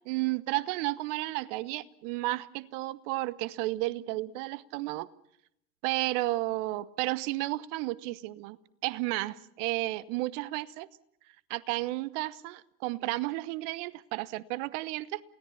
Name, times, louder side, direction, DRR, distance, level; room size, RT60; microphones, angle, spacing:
voice 1, 0.1-5.1 5.8-8.6 8.8-10.9 11.5-15.2, right 19 dB, 55° right, 1.1 m, -32 dB
28.0 x 17.5 x 7.0 m
hypercardioid pair, 90°, 43 cm